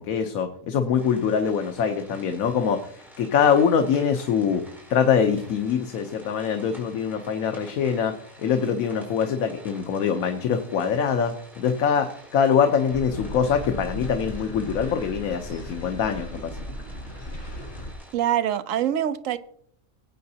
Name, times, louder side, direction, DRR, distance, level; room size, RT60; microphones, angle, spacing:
voice 1, 0.0-4.6 4.9-16.6, left 7 dB, 90° left, 1.2 m, -24 dB
sound 1, 1.0-18.1, equal, ahead, 4.3 m, -50 dB
sound 2, 12.9-17.9, equal, 55° left, 2.4 m, -36 dB
voice 2, 18.1-19.4, right 11 dB, 75° right, 1.0 m, -24 dB
18.5 x 8.6 x 2.8 m
omnidirectional pair, 1.4 m